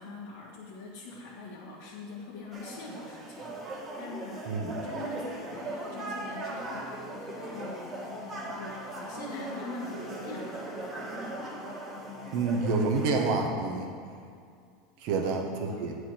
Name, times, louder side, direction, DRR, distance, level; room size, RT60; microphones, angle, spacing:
voice 1, 0.0-3.6 4.0-8.2 8.6-10.6 15.0-16.0, left 2 dB, 85° left, -6 dB, 1.3 m, -43 dB
sound 1, 2.5-13.3, right 2 dB, 30° right, 1.8 m, -39 dB
sound 2, 5.5-12.7, left 5 dB, 55° left, 1.1 m, -46 dB
voice 2, 12.3-13.9 15.0-15.9, right 3 dB, 65° right, 3 dB, 1.2 m, -28 dB
8.4 x 4.8 x 5.9 m, 2.2 s
supercardioid pair, 115°, 0 cm